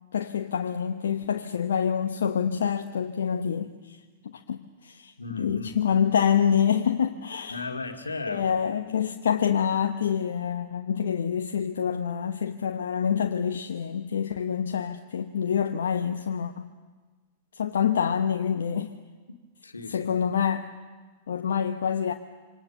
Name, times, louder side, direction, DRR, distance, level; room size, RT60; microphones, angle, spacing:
voice 1, 0.1-4.0 4.2-5.1 5.4-7.6 8.3-16.7 17.6-18.9 19.9-20.7 21.3-22.1, left 8 dB, 70° left, 5 dB, 1.0 m, -26 dB
voice 2, 5.2-5.8 7.5-8.5 19.3-20.2, left 3 dB, 85° left, 4 dB, 2.1 m, -36 dB
26.5 x 25.5 x 7.1 m, 1.4 s
figure-of-eight pair, 100°, 0 cm